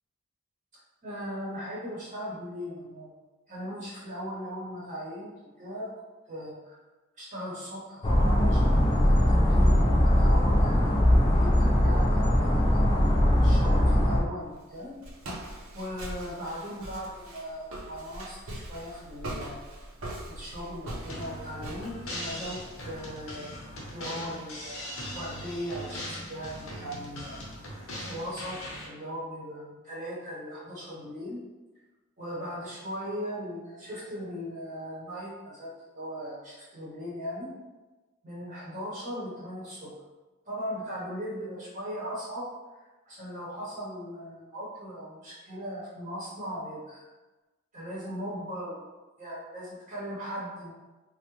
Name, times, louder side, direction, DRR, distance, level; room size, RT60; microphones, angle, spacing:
voice 1, 1.0-3.1 3.5-5.3 5.6-5.9 6.3-6.8 7.2-12.8 13.4-14.9 15.7-19.6 20.3-23.5 23.9-24.8 25.1-27.4 28.0-31.4 32.2-37.5 38.2-39.9 40.5-42.5 43.0-47.1 47.7-48.9 49.2-50.7, equal, 35° right, -6 dB, 0.7 m, -38 dB
sound 1, 8.0-14.2, left 1 dB, 25° left, 0.4 m, -21 dB
Walk footsteps, 14.4-23.0, right 1 dB, 70° right, 0.6 m, -41 dB
sound 2, 21.1-28.9, equal, 75° left, 0.8 m, -40 dB
3.3 x 2.0 x 3.0 m, 1.2 s
head